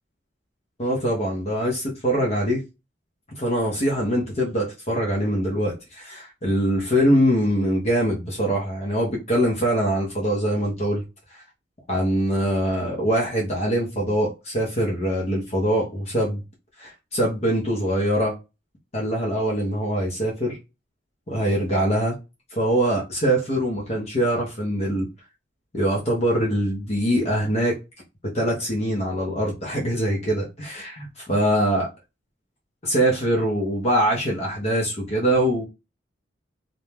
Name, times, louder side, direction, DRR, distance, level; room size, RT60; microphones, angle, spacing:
voice 1, 0.8-2.6 3.4-11.0 11.9-16.4 16.8-18.4 18.9-20.6 21.3-22.2 22.5-25.1 25.7-27.8 28.3-31.9 32.8-35.6, equal, 35° left, 0.8 m, -23 dB
2.6 x 2.2 x 3.1 m
head